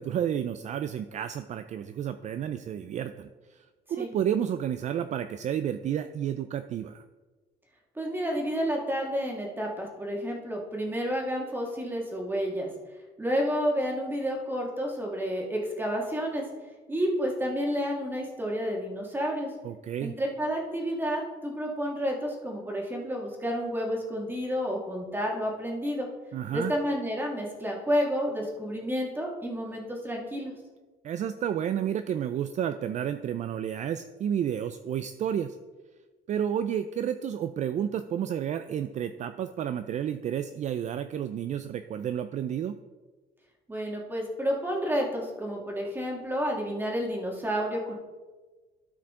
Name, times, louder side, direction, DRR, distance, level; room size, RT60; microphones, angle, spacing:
voice 1, 0.0-7.0 19.6-20.2 26.3-26.7 31.0-35.6 36.3-42.8, right 9 dB, 45° right, 10 dB, 0.4 m, -31 dB
voice 2, 8.0-12.7 13.2-16.5 16.9-19.5 20.0-26.1 26.5-30.5 43.7-47.9, equal, 10° right, 0 dB, 1.9 m, -30 dB
12.5 x 4.8 x 3.7 m, 1.3 s
cardioid pair, 110°, 17 cm